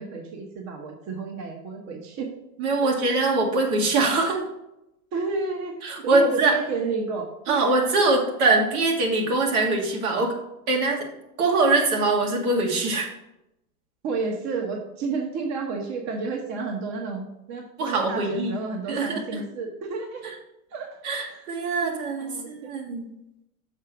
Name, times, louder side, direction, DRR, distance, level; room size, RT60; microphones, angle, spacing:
voice 1, 0.0-2.3 2.8-3.0 5.1-7.6 7.9-8.1 14.0-20.3 20.7-20.9 21.3-21.6 21.8-22.8, right 4 dB, 40° right, 2 dB, 1.1 m, -31 dB
voice 2, 2.6-4.4 5.8-6.5 7.5-10.3 10.7-11.1 11.4-13.1 17.8-18.5 18.9-19.4 21.0-23.1, right 3 dB, 75° right, 1 dB, 2.2 m, -23 dB
6.6 x 4.8 x 5.8 m, 0.87 s
supercardioid pair, 125°, 44 cm